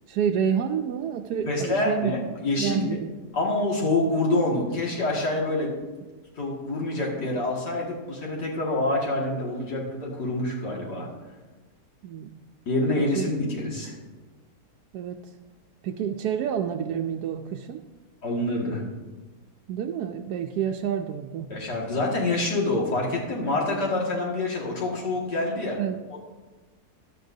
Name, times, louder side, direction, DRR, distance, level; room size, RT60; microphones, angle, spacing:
voice 1, 0.1-2.1 2.6-3.1 12.0-12.3 13.1-13.3 14.9-15.2 15.8-17.8 19.7-21.5 25.8-26.0, right 8 dB, 80° right, 3 dB, 1.1 m, -28 dB
voice 2, 1.5-2.8 3.3-5.7 6.4-11.1 12.7-14.0 18.2-18.8 21.5-25.8 26.1-26.2, left 2 dB, 90° left, -3 dB, 2.7 m, -26 dB
14.0 x 11.5 x 2.7 m, 1.2 s
omnidirectional pair, 1.7 m